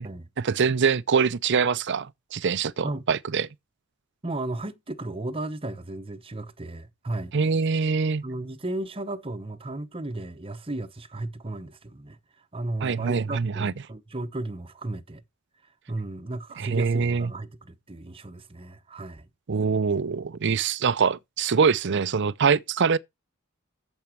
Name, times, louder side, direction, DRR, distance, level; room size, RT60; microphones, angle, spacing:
voice 1, 0.4-3.5 7.3-8.2 12.8-13.7 16.6-17.3 19.5-23.0, right 5 dB, 55° right, 0.5 m, -24 dB
voice 2, 4.2-7.3 8.2-12.2 12.5-15.2 15.9-19.3, right 2 dB, 25° right, 0.9 m, -34 dB
8.7 x 7.2 x 4.5 m
head